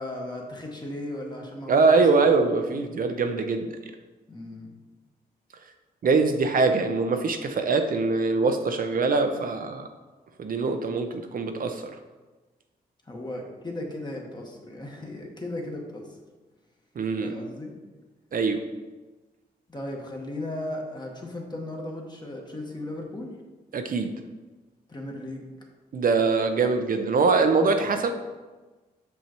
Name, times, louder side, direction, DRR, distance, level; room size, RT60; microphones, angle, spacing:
voice 1, 0.0-2.0 2.3-2.9 4.3-4.7 13.1-16.1 17.2-17.7 19.7-23.3 24.9-25.5 27.9-28.0, left 1 dB, 25° left, 0 dB, 1.3 m, -36 dB
voice 2, 1.7-3.7 6.0-9.9 10.4-11.9 17.0-17.3 18.3-18.7 23.7-24.1 25.9-28.1, right 4 dB, 55° right, 6 dB, 0.6 m, -23 dB
6.4 x 5.5 x 3.0 m, 1.2 s
cardioid pair, 70°, 17 cm